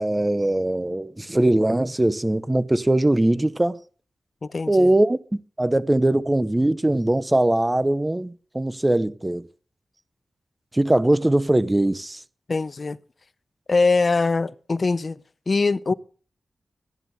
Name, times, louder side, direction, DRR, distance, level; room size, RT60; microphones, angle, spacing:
voice 1, 0.0-3.8 4.7-9.5 10.7-12.2, right 1 dB, 15° right, 0.7 m, -21 dB
voice 2, 4.4-4.9 12.5-13.0 13.7-15.2 15.5-15.9, left 3 dB, 45° left, 0.6 m, -22 dB
13.0 x 10.5 x 6.5 m
wide cardioid pair, 105°, 0 cm